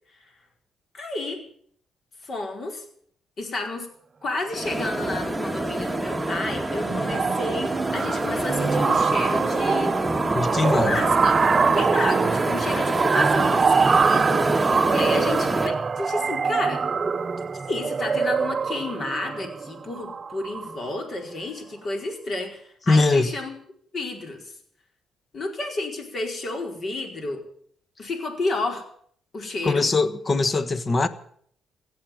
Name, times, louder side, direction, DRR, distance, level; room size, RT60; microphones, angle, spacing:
voice 1, 0.9-1.4 2.2-2.8 3.4-3.9 4.2-9.9 10.7-11.4 11.7-16.8 17.7-23.6 23.9-24.6 25.3-27.4 28.0-28.8 29.3-29.9, left 2 dB, 50° left, 4.6 m, -31 dB
sound 1, 4.5-15.7, right 1 dB, 5° right, 1.5 m, -27 dB
sound 2, 4.9-5.2 5.5-5.7 6.0-20.9, right 5 dB, 40° right, 0.6 m, -24 dB
voice 2, 10.3-11.0 22.9-23.3 29.6-31.1, left 3 dB, 35° left, 1.3 m, -21 dB
16.5 x 8.1 x 9.2 m
cardioid pair, 90°, 0 cm